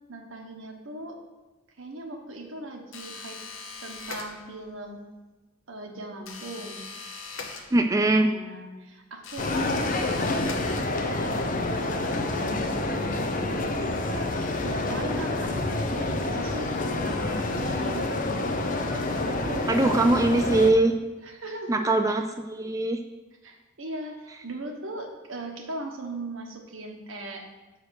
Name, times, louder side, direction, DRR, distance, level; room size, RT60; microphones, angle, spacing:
voice 1, 0.1-1.2 1.8-3.4 3.8-5.0 5.7-6.9 8.2-11.5 12.0-14.3 14.6-18.5 18.8-20.2 21.2-22.2 23.4-27.5, right 1 dB, 80° right, 2 dB, 1.2 m, -39 dB
sound 1, 2.9-4.7 6.2-8.2 9.2-11.3, left 4 dB, 80° left, 0.9 m, -40 dB
voice 2, 7.7-8.3 19.7-20.9 21.7-23.0, right 2 dB, 15° right, 5 dB, 0.3 m, -22 dB
sound 2, 9.4-20.7, left 2 dB, 40° left, 0.6 m, -28 dB
6.3 x 5.1 x 6.4 m, 1.1 s
head